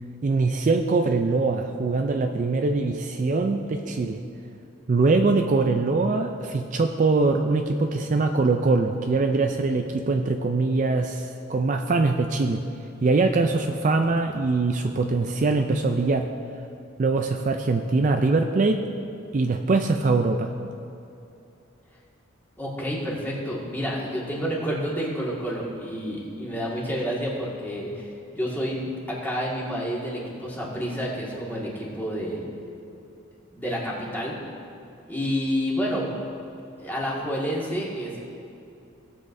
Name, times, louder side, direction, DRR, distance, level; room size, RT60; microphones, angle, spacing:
voice 1, 0.2-4.2 4.9-12.6 13.0-16.3 17.0-18.8 19.3-20.5, right 3 dB, 40° right, 5 dB, 0.4 m, -23 dB
voice 2, 22.6-32.4 33.5-34.4 35.1-36.1 36.8-38.2, equal, 10° left, -5 dB, 1.8 m, -29 dB
18.0 x 7.5 x 2.6 m, 2.7 s
head